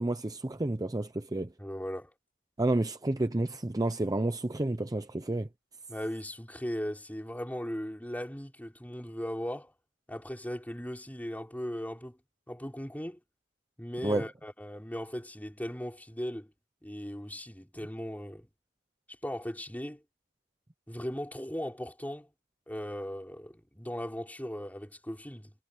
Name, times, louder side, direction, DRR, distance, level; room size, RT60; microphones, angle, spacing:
voice 1, 0.0-1.5 2.6-5.5 14.0-14.2, right 2 dB, 15° right, 0.6 m, -30 dB
voice 2, 1.6-2.1 5.9-9.7 10.1-12.2 12.5-13.2 13.8-16.5 16.8-18.5 19.2-20.0 20.9-22.3 22.7-25.5, equal, 10° left, 4.7 m, -38 dB
head